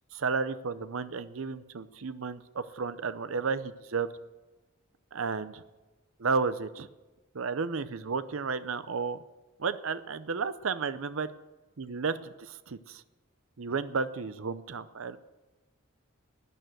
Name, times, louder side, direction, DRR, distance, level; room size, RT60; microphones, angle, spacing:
voice 1, 0.1-4.1 5.1-5.6 6.2-6.9 7.3-9.2 9.6-11.3 11.8-13.0 13.6-15.2, right 5 dB, 70° right, 13 dB, 0.6 m, -32 dB
12.0 x 9.2 x 8.0 m, 1.1 s
head